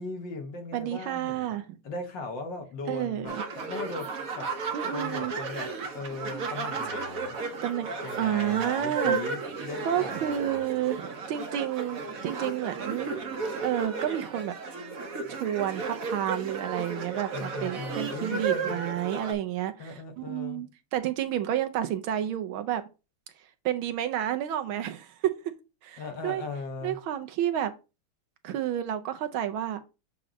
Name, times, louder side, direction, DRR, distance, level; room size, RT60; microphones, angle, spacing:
voice 1, 0.0-1.5 1.8-4.5 4.9-5.7 5.9-7.4 8.0-10.7 17.3-18.9 19.8-20.6 26.0-27.0, left 3 dB, 60° left, 1.8 m, -38 dB
voice 2, 0.7-1.7 2.9-3.4 4.7-5.3 7.6-9.2 9.8-13.1 13.6-14.6 15.3-22.8 23.4-25.3 25.8-26.4 26.8-27.7 28.4-29.8, right 11 dB, 75° right, 1.4 m, -30 dB
sound 1, 3.3-19.3, right 4 dB, 50° right, 1.1 m, -34 dB
7.6 x 3.0 x 5.0 m
omnidirectional pair, 2.4 m